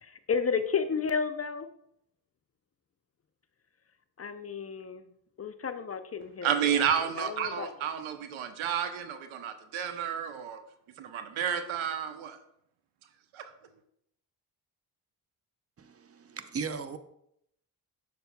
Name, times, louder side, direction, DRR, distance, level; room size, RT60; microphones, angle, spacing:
voice 1, 0.0-1.7 4.2-5.1 5.4-6.8 7.2-7.7, left 6 dB, 30° left, 0.5 m, -32 dB
voice 2, 6.4-10.6 11.0-12.4 13.3-13.4, right 8 dB, 75° right, 0.8 m, -31 dB
voice 3, 15.8-17.0, right 5 dB, 30° right, 0.7 m, -37 dB
6.8 x 6.7 x 2.2 m
hypercardioid pair, 40°, 49 cm